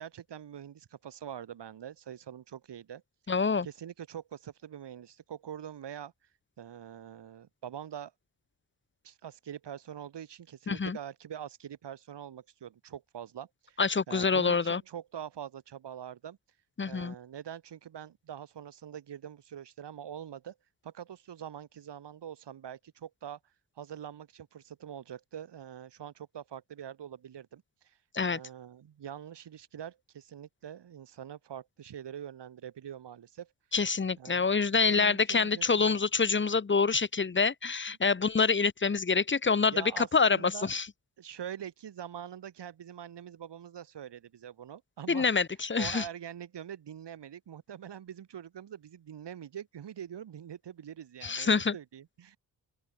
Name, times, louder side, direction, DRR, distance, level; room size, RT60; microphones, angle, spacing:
voice 1, 0.0-3.0 3.6-6.1 6.6-8.1 9.0-13.8 14.1-16.4 16.8-20.6 20.8-23.4 23.8-28.0 28.3-33.5 34.2-34.4 34.9-36.0 39.6-40.7 41.2-45.3 45.8-52.4, right 9 dB, 70° right, 2.1 m, -44 dB
voice 2, 3.3-3.7 10.7-11.0 13.8-14.8 16.8-17.1 28.1-28.4 33.7-40.9 45.1-46.0 51.2-51.7, left 5 dB, 25° left, 0.9 m, -26 dB
open air
cardioid pair, 65°, 43 cm